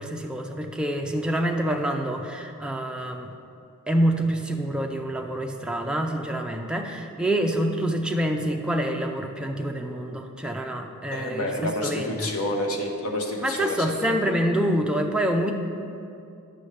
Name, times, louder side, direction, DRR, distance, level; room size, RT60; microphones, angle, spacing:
voice 1, 0.0-3.3 3.9-12.3 13.4-15.5, right 1 dB, 5° right, 2 dB, 0.4 m, -26 dB
voice 2, 11.1-14.1, left 1 dB, 80° left, 1 dB, 0.9 m, -29 dB
9.5 x 6.1 x 3.3 m, 2.6 s
head